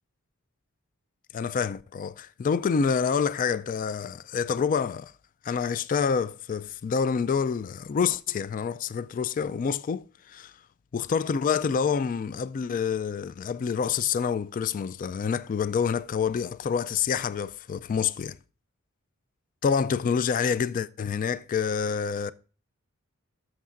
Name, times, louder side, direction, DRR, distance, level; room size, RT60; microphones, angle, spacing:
voice 1, 1.3-5.1 5.4-10.5 10.9-18.4 19.6-22.3, left 6 dB, 40° left, 0.3 m, -27 dB
13.0 x 6.3 x 2.5 m
head